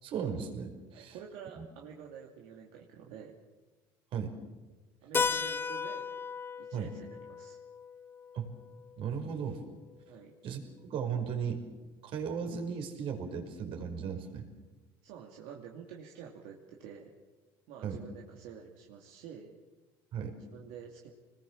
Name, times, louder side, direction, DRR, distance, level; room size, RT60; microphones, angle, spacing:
voice 1, 0.0-1.2 1.6-1.7 4.1-4.3 6.7-6.9 8.3-8.5 9.0-9.6 10.4-10.6 10.9-11.6 12.0-14.5 17.8-18.0 20.1-20.3, right 7 dB, 60° right, 5 dB, 5.2 m, -36 dB
voice 2, 0.9-3.4 5.0-6.1 6.6-7.6 10.1-10.3 15.0-17.1 17.7-19.6 20.4-21.1, right 7 dB, 75° right, -1 dB, 2.7 m, -49 dB
Keyboard (musical), 5.1-9.6, left 5 dB, 20° left, 0.9 m, -36 dB
26.5 x 20.5 x 7.4 m, 1.3 s
supercardioid pair, 115°, 10 cm